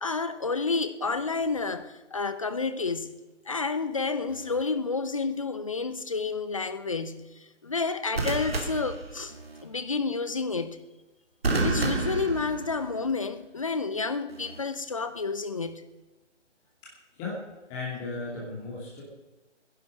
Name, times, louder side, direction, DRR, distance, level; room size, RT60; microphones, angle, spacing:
voice 1, 0.0-3.1 3.5-7.3 7.6-9.3 9.6-10.8 11.5-15.8, left 4 dB, 30° left, 0.8 m, -30 dB
sound 1, 4.3-4.6 8.1-9.6 11.4-13.1 14.3-14.6, right 3 dB, 55° right, 3.0 m, -30 dB
voice 2, 17.7-19.0, left 3 dB, 10° left, 2.6 m, -35 dB
18.0 x 11.0 x 6.3 m
figure-of-eight pair, 150°, 36 cm